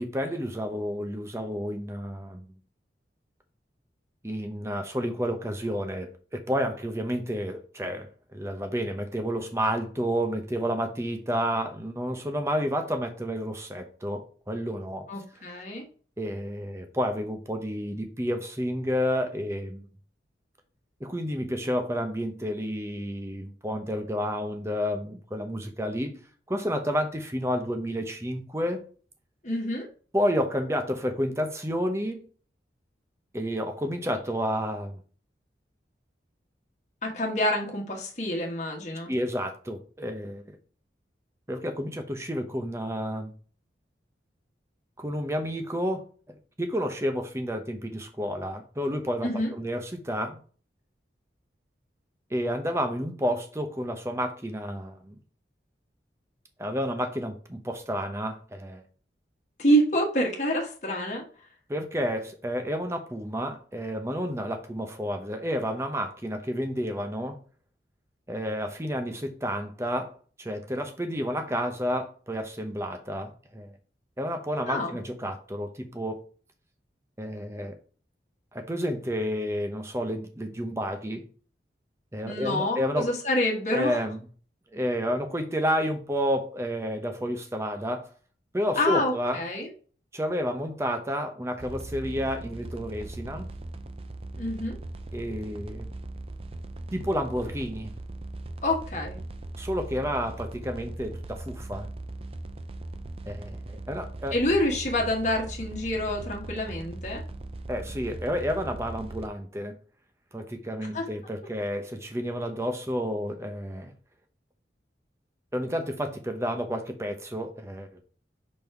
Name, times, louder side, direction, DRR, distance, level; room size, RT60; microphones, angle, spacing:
voice 1, 0.0-2.5 4.2-15.1 16.2-19.9 21.0-26.1 26.5-28.8 30.1-32.3 33.3-35.0 39.0-40.6 41.5-43.3 45.0-46.0 46.6-50.4 52.3-55.1 56.6-58.8 61.7-67.4 68.3-73.8 74.2-76.2 77.2-77.8 78.5-81.2 82.1-83.1 83.7-84.2 84.7-88.1 88.5-89.4 90.1-93.5 95.1-95.9 96.9-97.9 99.6-101.9 103.3-104.4 107.7-109.7 110.3-113.9 115.5-118.0, equal, 15° right, 5 dB, 0.9 m, -30 dB
voice 2, 15.1-15.8 29.4-29.9 37.0-39.1 49.2-49.5 59.6-61.2 74.7-74.9 82.3-84.0 88.7-89.7 94.4-94.8 98.6-99.2 104.3-107.2 110.9-111.0, equal, 40° left, 0 dB, 1.5 m, -27 dB
sound 1, 91.6-109.3, right 2 dB, 30° right, 0.5 m, -39 dB
5.4 x 4.2 x 4.5 m, 0.41 s
head